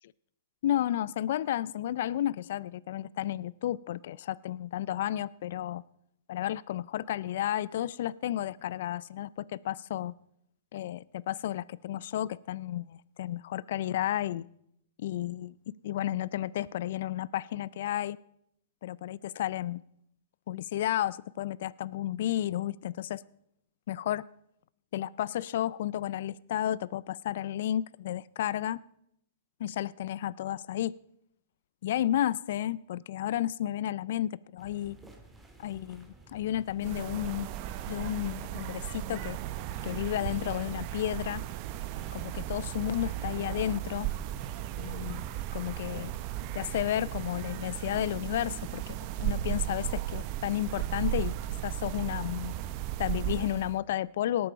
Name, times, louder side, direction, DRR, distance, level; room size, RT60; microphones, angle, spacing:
voice 1, 0.6-5.8 6.3-10.1 10.7-14.5 15.0-15.5 15.8-18.2 18.8-19.8 20.5-23.2 23.9-24.2 24.9-28.8 29.6-30.9 31.8-35.0 35.6-37.5 37.9-39.4 39.8-41.4 42.1-44.1 44.8-45.3 45.5-46.1 46.5-51.3 51.6-52.5 53.0-54.5, left 12 dB, 65° left, 21 dB, 0.4 m, -32 dB
sound 1, 34.6-46.5, right 2 dB, 10° right, 2.1 m, -54 dB
sound 2, 36.8-53.8, right 13 dB, 45° right, 0.8 m, -35 dB
18.5 x 8.5 x 5.1 m, 0.73 s
hypercardioid pair, 125°, 0 cm